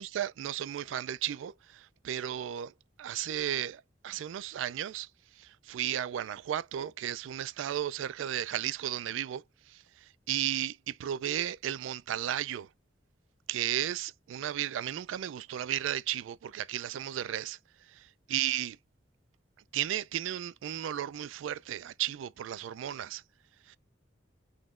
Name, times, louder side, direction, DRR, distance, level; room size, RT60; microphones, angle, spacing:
voice 1, 0.0-5.1 5.4-12.7 13.5-17.6 17.9-18.8 19.7-23.2 23.7-23.8, right 11 dB, 85° right, 0.3 m, -34 dB
4.0 x 3.0 x 2.4 m
head